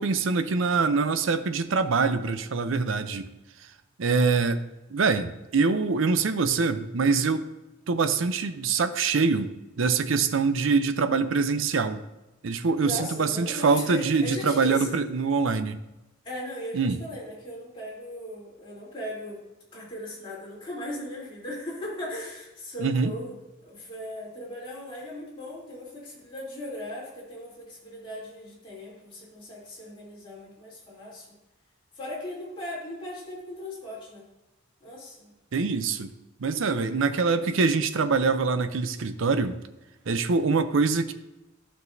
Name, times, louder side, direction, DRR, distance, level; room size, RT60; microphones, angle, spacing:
voice 1, 0.0-3.2 4.0-4.6 4.9-7.4 7.9-12.0 12.4-15.8 16.7-17.0 22.8-23.1 35.5-36.1 36.4-39.6 40.1-41.1, right 4 dB, 70° right, 10 dB, 0.6 m, -24 dB
voice 2, 12.8-15.0 16.2-19.4 19.7-23.4 23.6-31.3 31.9-34.2 34.8-35.3 36.7-36.9, left 1 dB, 25° left, -7 dB, 3.1 m, -38 dB
12.0 x 6.2 x 2.6 m, 1.0 s
head